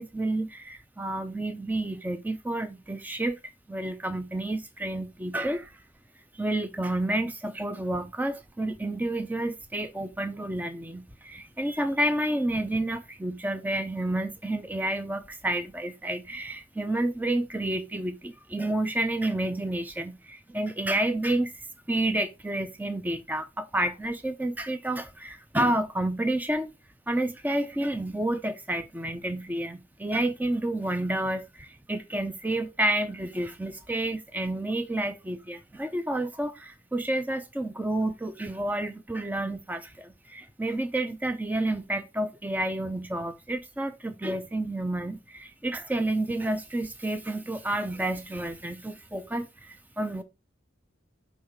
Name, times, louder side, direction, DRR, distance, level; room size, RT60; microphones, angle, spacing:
voice 1, 0.0-3.4 3.7-5.8 6.3-26.7 27.1-50.2, right 1 dB, 10° right, 0.5 m, -30 dB
6.3 x 3.2 x 5.0 m
head